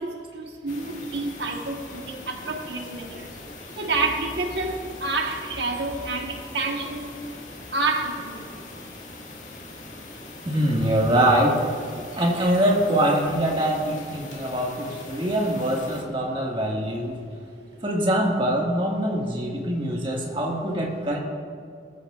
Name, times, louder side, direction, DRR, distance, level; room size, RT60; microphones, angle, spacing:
voice 1, 0.0-3.3 3.8-7.0 7.7-8.4, right 3 dB, 75° right, 1 dB, 1.3 m, -28 dB
sound 1, 0.7-16.0, left 2 dB, 45° left, 1.9 m, -42 dB
voice 2, 10.4-11.6 12.2-17.2 17.8-21.2, right 1 dB, 30° right, -1 dB, 1.8 m, -23 dB
20.5 x 14.0 x 2.4 m, 2.4 s
head